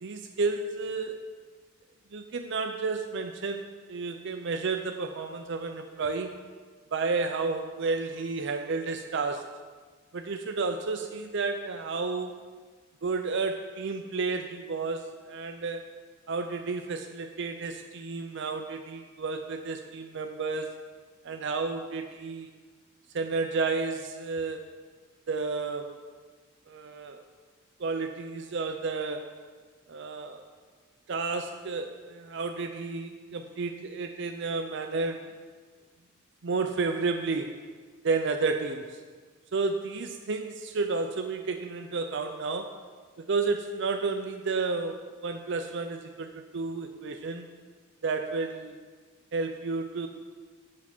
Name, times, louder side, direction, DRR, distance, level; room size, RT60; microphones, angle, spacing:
voice 1, 0.0-1.2 2.1-6.3 6.9-9.5 10.1-12.3 13.0-15.9 16.3-20.8 21.2-22.5 23.1-24.6 25.3-26.0 26.7-27.2 27.8-29.3 29.9-30.5 31.1-35.3 36.4-37.6 38.0-38.9 39.5-42.8 43.2-47.5 48.0-48.7 49.3-50.1, right 4 dB, 60° right, 6 dB, 0.5 m, -31 dB
8.5 x 5.5 x 6.0 m, 1.5 s
head